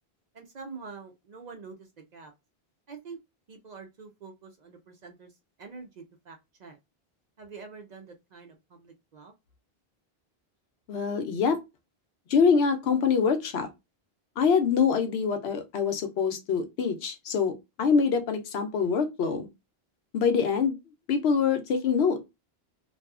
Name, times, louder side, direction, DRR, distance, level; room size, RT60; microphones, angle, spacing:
voice 1, 0.3-2.3 2.9-3.2 3.5-5.3 5.6-6.8 7.4-9.3, right 4 dB, 55° right, 0.5 m, -46 dB
voice 2, 10.9-11.6 12.3-13.7 14.4-17.5 17.8-19.5 20.1-20.8 21.1-22.3, left 6 dB, 85° left, 0.9 m, -24 dB
2.7 x 2.3 x 2.3 m
omnidirectional pair, 1.1 m